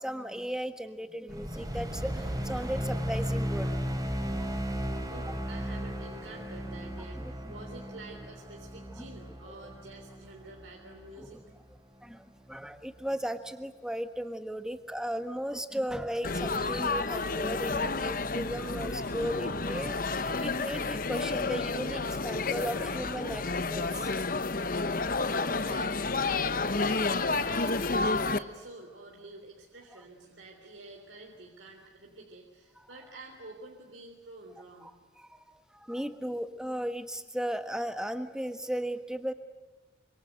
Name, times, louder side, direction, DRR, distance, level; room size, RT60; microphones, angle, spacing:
voice 1, 0.0-3.8 4.4-4.5 7.2-7.3 9.0-9.1 11.2-11.4 12.0-24.2 34.8-34.9 35.2-39.3, equal, 5° right, 8 dB, 1.4 m, -36 dB
sound 1, 1.3-11.8, equal, 20° right, 3.6 m, -35 dB
voice 2, 5.1-11.4 24.4-34.9, right 2 dB, 85° right, 1 dB, 3.5 m, -49 dB
Laughter / Chatter / Crowd, 16.2-28.4, left 3 dB, 45° left, 0.9 m, -30 dB
26.5 x 25.5 x 7.9 m, 1.3 s
head